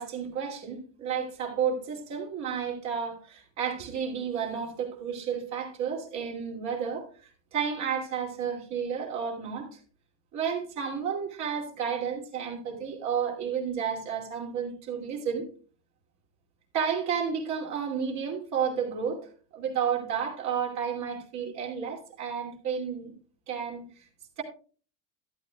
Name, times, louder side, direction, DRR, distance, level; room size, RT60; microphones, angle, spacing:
voice 1, 0.0-9.8 10.3-15.5 16.7-19.2 19.5-23.1 23.5-24.0 24.4-24.5, right 7 dB, 45° right, 0 dB, 2.7 m, -31 dB
13.0 x 11.0 x 2.3 m, 0.39 s
supercardioid pair, 120°, 38 cm